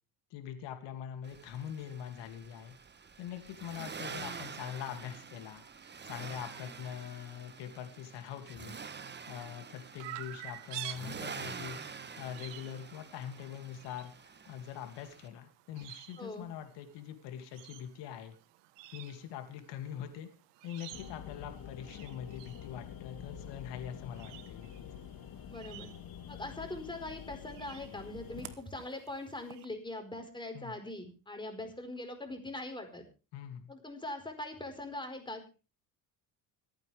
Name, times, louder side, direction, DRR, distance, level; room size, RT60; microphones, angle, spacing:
voice 1, 0.3-2.7 3.2-5.6 6.0-8.8 9.3-14.1 14.5-18.3 18.9-20.3 20.6-24.9 30.5-30.8 33.3-33.7, left 9 dB, 85° left, 6 dB, 2.7 m, -43 dB
Accelerating revving vroom, 1.2-15.3, right 5 dB, 25° right, 1.2 m, -47 dB
Chirp tweet, 10.0-29.6, right 14 dB, 85° right, 1.3 m, -51 dB
voice 2, 16.2-16.5 25.5-25.9 26.3-33.0 33.7-35.5, left 2 dB, 10° left, 5 dB, 4.7 m, -42 dB
sound 1, 20.9-28.6, left 8 dB, 55° left, 2.0 m, -47 dB
25.5 x 9.3 x 3.5 m, 0.32 s
cardioid pair, 100°, 41 cm